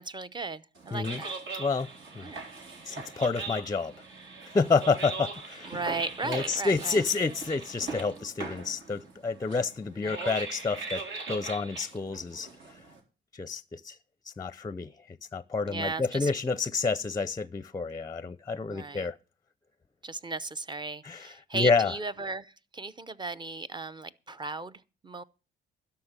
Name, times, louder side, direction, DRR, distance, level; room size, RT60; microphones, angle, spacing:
voice 1, 0.0-1.3 2.2-2.4 5.6-7.0 10.0-10.2 15.7-16.3 18.7-19.1 20.0-25.2, right 3 dB, 20° right, 0.8 m, -36 dB
sound 1, 0.8-13.0, right 4 dB, 75° right, 4.1 m, -40 dB
voice 2, 0.9-1.2 1.5-1.9 2.2-2.3 2.9-3.9 4.5-5.8 6.2-11.0 11.3-12.5 13.3-14.0 14.4-14.9 15.3-19.2 21.0-21.9, left 4 dB, 20° left, 0.6 m, -29 dB
12.5 x 5.8 x 8.9 m
cardioid pair, 90°, 20 cm